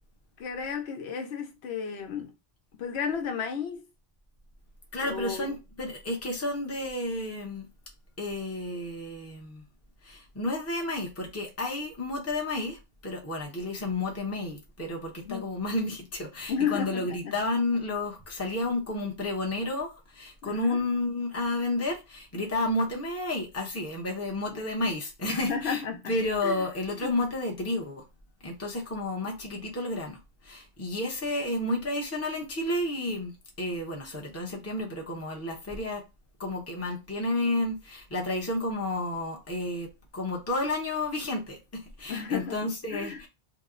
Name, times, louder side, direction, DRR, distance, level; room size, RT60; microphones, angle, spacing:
voice 1, 0.4-2.3 2.8-3.9 5.0-5.5 15.2-15.5 16.5-17.3 20.4-20.8 25.3-26.1 26.4-26.6 27.0-27.2 42.1-42.6 42.9-43.3, left 6 dB, 80° left, 0.9 m, -33 dB
voice 2, 4.9-7.7 8.2-9.6 10.0-25.8 26.1-28.0 28.4-36.0 36.4-43.3, left 2 dB, 15° left, 0.7 m, -31 dB
2.9 x 2.1 x 3.6 m
omnidirectional pair, 1.1 m